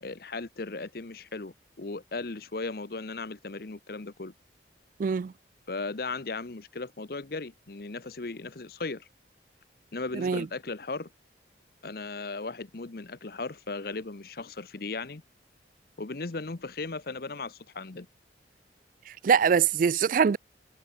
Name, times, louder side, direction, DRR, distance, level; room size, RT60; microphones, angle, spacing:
voice 1, 0.0-4.3 5.7-9.1 9.9-11.1 11.8-15.2 16.0-18.1, left 3 dB, 55° left, 0.9 m, -37 dB
voice 2, 5.0-5.3 10.1-10.5 19.2-20.4, right 6 dB, 50° right, 0.3 m, -23 dB
head